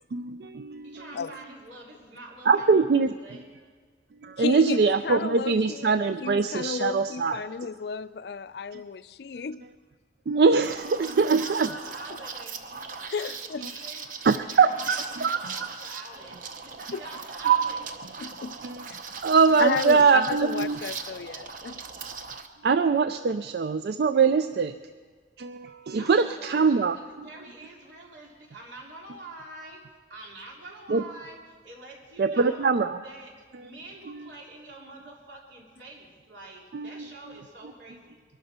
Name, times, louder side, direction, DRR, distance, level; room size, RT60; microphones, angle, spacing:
voice 1, 0.1-1.0 2.5-3.1 4.2-7.4 8.7-8.8 10.3-11.7 14.2-15.7 17.4-17.7 18.6-18.8 19.2-20.8 22.6-24.7 25.4-27.0 30.9-31.0 32.2-33.0 36.7-36.9, right 5 dB, 65° right, 0.4 m, -23 dB
voice 2, 0.8-3.5 11.0-12.8 13.4-17.8 18.9-19.1 23.2-23.4 25.8-29.8 30.1-32.7 33.0-38.2, right 2 dB, 90° right, 3.2 m, -46 dB
voice 3, 4.4-9.6 13.1-13.7 16.9-17.0 18.2-18.6 19.6-21.8, left 5 dB, 70° left, 0.4 m, -33 dB
Liquid, 10.6-22.5, right 5 dB, 50° right, 0.8 m, -39 dB
23.0 x 12.0 x 4.3 m
head